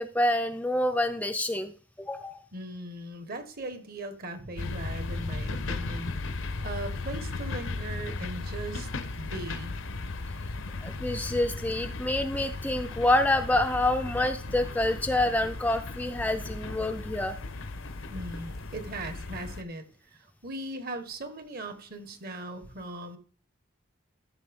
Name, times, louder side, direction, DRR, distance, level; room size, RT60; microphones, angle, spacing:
voice 1, 0.0-1.7 2.0-2.4 10.8-17.4, left 1 dB, 10° left, 7 dB, 0.4 m, -27 dB
voice 2, 2.5-6.1 6.6-8.9 9.2-9.8 18.1-19.8 20.1-23.2, right 2 dB, 50° right, 8 dB, 1.3 m, -39 dB
sound 1, 4.6-19.6, left 3 dB, 80° left, 0.9 m, -36 dB
13.5 x 6.0 x 3.6 m, 0.42 s
head